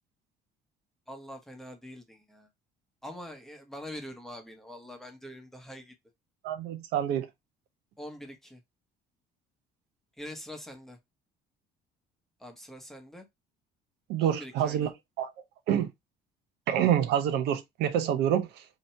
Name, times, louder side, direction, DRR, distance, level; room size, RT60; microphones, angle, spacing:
voice 1, 1.1-2.5 3.0-5.9 8.0-8.6 10.2-11.0 12.4-13.3 14.2-14.9, left 1 dB, ahead, 1.1 m, -44 dB
voice 2, 6.4-7.3 14.1-14.9 15.2-15.3 15.7-15.9 16.7-18.6, right 10 dB, 75° right, 0.6 m, -27 dB
2.9 x 2.6 x 4.4 m
cardioid pair, 105°, 17 cm